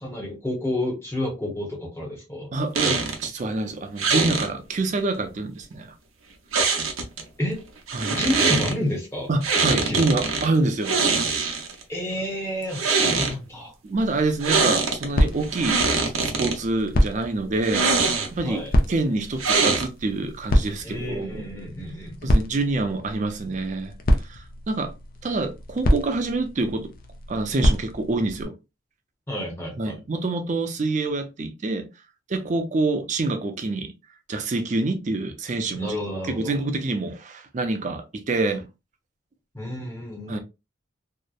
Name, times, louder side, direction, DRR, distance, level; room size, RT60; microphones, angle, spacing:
voice 1, 0.0-2.5 7.4-7.6 8.1-9.3 9.6-10.0 11.9-13.7 18.4-18.7 20.8-22.4 29.3-30.0 35.7-36.5 39.5-40.4, left 1 dB, 10° left, 0.8 m, -30 dB
voice 2, 2.5-5.9 7.9-8.2 9.3-11.0 13.1-13.3 13.8-18.6 18.9-21.4 22.2-23.9 24.2-24.9 25.2-26.9 27.3-28.5 29.8-31.9 32.3-33.9 34.3-36.0 36.2-38.7 40.3-40.4, right 2 dB, 35° right, 0.4 m, -26 dB
sound 1, 2.7-3.3 4.0-4.5 6.5-7.2 7.9-8.7 9.4-10.5 10.8-11.8 12.6-13.3 14.4-15.1 15.4-16.5 17.6-18.5 19.4-20.1, right 4 dB, 85° right, 0.6 m, -23 dB
sound 2, 13.9-28.5, equal, 45° left, 0.4 m, -27 dB
2.7 x 2.0 x 2.2 m
head